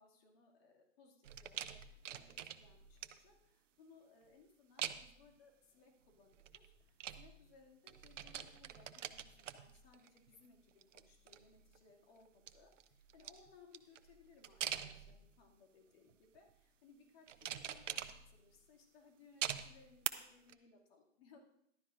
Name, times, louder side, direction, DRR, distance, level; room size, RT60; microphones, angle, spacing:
voice 1, 0.0-21.4, left 4 dB, 50° left, 0 dB, 2.5 m, -65 dB
sound 1, 1.2-3.4 4.8-5.3 6.3-7.6 7.9-10.3 10.7-11.8 12.3-15.5 16.1-16.5 17.3-18.6 19.4-20.1 20.5-20.6, right 10 dB, 75° right, 0.8 m, -45 dB
14.5 x 12.0 x 2.6 m, 0.75 s
hypercardioid pair, 130°, 37 cm